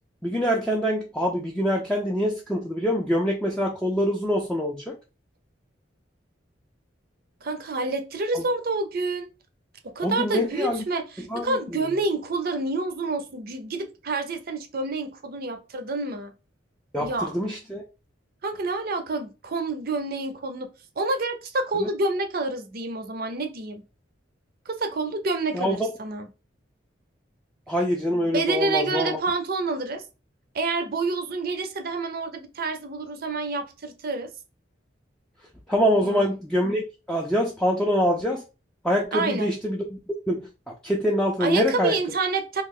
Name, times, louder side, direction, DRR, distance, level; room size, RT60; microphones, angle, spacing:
voice 1, 0.2-5.0 8.3-8.4 10.0-10.8 11.2-11.8 16.9-17.8 21.8-21.9 25.5-25.9 27.7-29.2 35.7-38.4 38.8-40.0 40.3-40.5 40.8-41.9, equal, 5° left, 0.4 m, -25 dB
voice 2, 7.4-9.3 9.8-16.3 17.0-17.3 18.4-20.7 21.0-23.8 24.7-26.3 28.1-30.0 30.5-34.3 36.0-36.3 39.1-39.5 41.4-42.6, right 3 dB, 50° right, 0.6 m, -28 dB
3.1 x 2.4 x 3.6 m
head